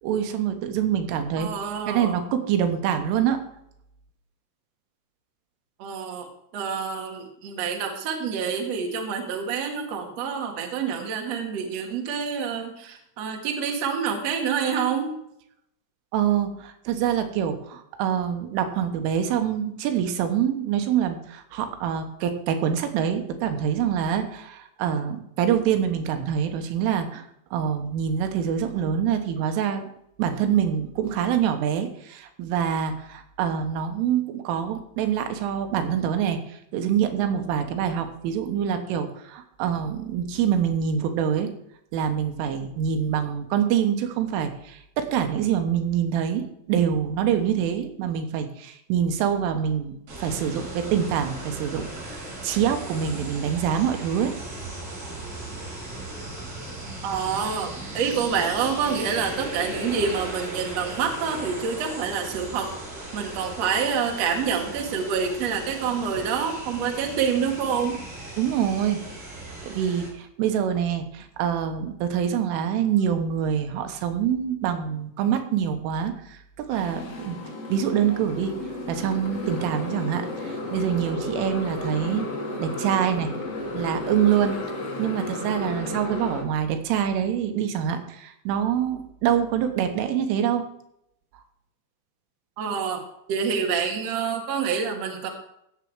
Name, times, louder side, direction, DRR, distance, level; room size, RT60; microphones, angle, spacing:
voice 1, 0.0-1.5 1.9-3.4 16.1-29.9 30.2-41.5 41.9-54.3 68.4-69.0 69.6-77.4 77.7-78.6 78.9-82.3 82.6-83.3 83.7-84.6 85.0-90.7, right 8 dB, 85° right, 6 dB, 3.7 m, -25 dB
voice 2, 1.4-2.2 5.8-6.3 6.5-15.1 57.0-57.7 57.9-62.7 63.1-68.0 92.6-93.0 93.3-95.3, right 6 dB, 50° right, 2 dB, 2.0 m, -27 dB
sound 1, 50.1-70.1, right 2 dB, 65° right, 8.5 m, -37 dB
Motorcycle, 76.7-86.4, left 2 dB, 80° left, 0.9 m, -33 dB
16.5 x 7.2 x 4.8 m, 0.76 s
omnidirectional pair, 5.6 m